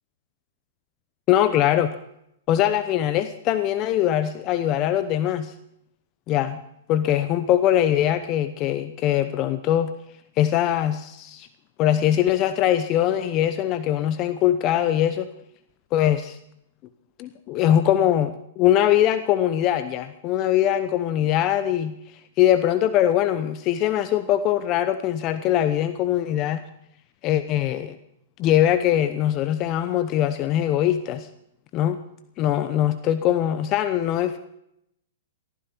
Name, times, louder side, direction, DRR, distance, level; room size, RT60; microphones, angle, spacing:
voice 1, 1.3-1.9 2.5-5.5 6.3-6.6 6.9-9.9 10.4-11.5 11.8-15.3 15.9-16.4 17.2-21.9 22.4-26.6 27.2-28.0 28.4-31.3 31.7-32.0 32.4-34.4, left 11 dB, 35° left, 11 dB, 0.9 m, -22 dB
19.0 x 14.0 x 4.5 m, 0.77 s
hypercardioid pair, 115°, 0 cm